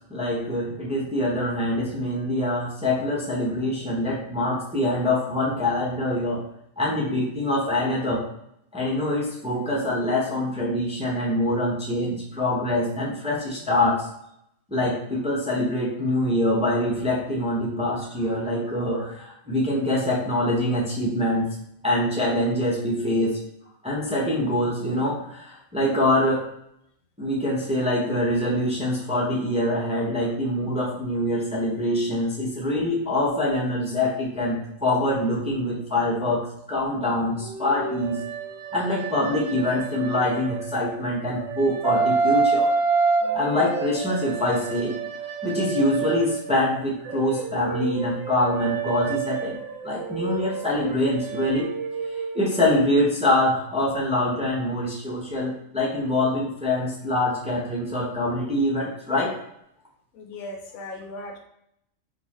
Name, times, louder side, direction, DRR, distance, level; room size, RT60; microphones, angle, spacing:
voice 1, 0.1-6.4 6.8-8.3 8.7-14.1 14.7-21.5 21.8-23.4 23.8-26.5 27.2-38.2 38.7-42.7 43.3-44.9 45.4-49.6 49.8-51.7 52.3-59.3, left 1 dB, 5° right, -4 dB, 0.7 m, -24 dB
sound 1, 37.4-41.0 41.4-46.6 47.0-52.6, right 5 dB, 75° right, 1.0 m, -28 dB
voice 2, 43.2-43.7 54.7-54.8 60.1-61.4, left 1 dB, 90° left, 3 dB, 1.2 m, -38 dB
3.7 x 2.9 x 3.0 m, 0.76 s
omnidirectional pair, 1.5 m